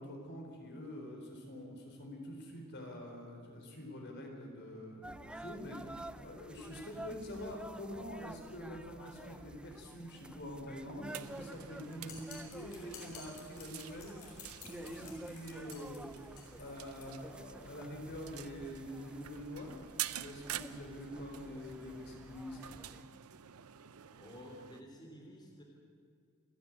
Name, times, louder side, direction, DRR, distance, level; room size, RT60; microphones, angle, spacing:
voice 1, 0.0-14.2 14.6-19.8 20.1-22.8, equal, 55° left, 2 dB, 4.2 m, -46 dB
sound 1, 5.0-23.0, right 1 dB, 5° right, 0.5 m, -51 dB
sound 2, 11.1-24.8, right 12 dB, 85° right, 0.7 m, -48 dB
sound 3, 12.1-17.1, left 6 dB, 80° left, 5.3 m, -53 dB
voice 2, 24.2-25.6, equal, 20° left, -1 dB, 3.4 m, -51 dB
27.5 x 10.5 x 9.5 m, 2.2 s
head